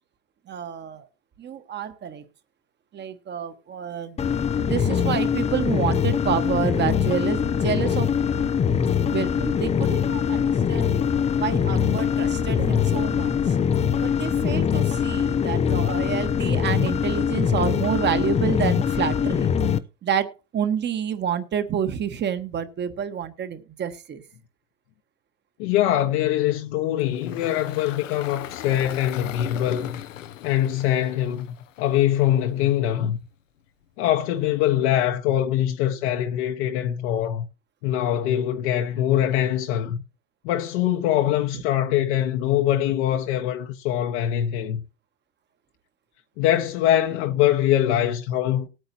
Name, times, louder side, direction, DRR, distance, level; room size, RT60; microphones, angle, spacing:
voice 1, 0.5-1.1 1.4-2.2 2.9-4.2 4.6-8.1 9.0-10.9 11.4-13.5 14.0-19.5 20.0-24.2, right 8 dB, 30° right, 1.4 m, -28 dB
sound 1, 4.2-19.8, left 7 dB, 20° left, 0.5 m, -23 dB
voice 2, 25.6-30.0 30.4-31.5 31.8-33.2 34.0-37.4 37.8-40.0 40.4-44.8 46.4-48.7, left 12 dB, 65° left, 1.3 m, -23 dB
Engine, 27.0-32.3, left 11 dB, 85° left, 1.1 m, -38 dB
19.0 x 9.0 x 2.8 m
supercardioid pair, 115°, 37 cm